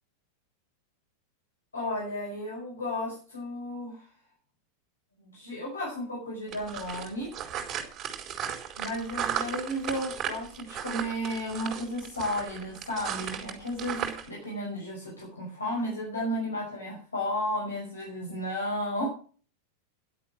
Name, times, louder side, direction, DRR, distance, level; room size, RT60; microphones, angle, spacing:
voice 1, 1.7-4.1 5.2-7.3 8.8-19.1, left 1 dB, 75° left, -2 dB, 5.7 m, -33 dB
sound 1, 6.5-14.3, right 9 dB, 30° right, 4.3 m, -35 dB
11.5 x 8.2 x 7.8 m, 0.41 s
figure-of-eight pair, 90°, 0 cm